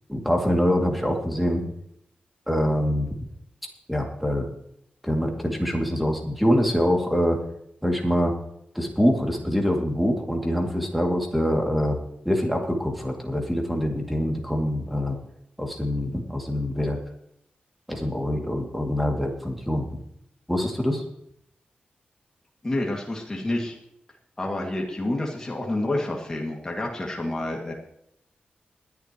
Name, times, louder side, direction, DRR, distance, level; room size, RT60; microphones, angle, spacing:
voice 1, 0.1-1.6 2.5-3.1 3.9-4.5 5.0-7.4 7.8-8.3 8.7-12.0 12.2-15.2 15.6-17.0 17.9-20.0 20.5-21.0, equal, ahead, 1 dB, 2.4 m, -24 dB
voice 2, 22.6-23.8 24.4-27.7, left 1 dB, 20° left, -1 dB, 2.1 m, -28 dB
21.0 x 11.0 x 3.0 m, 0.74 s
wide cardioid pair, 175°, 3 cm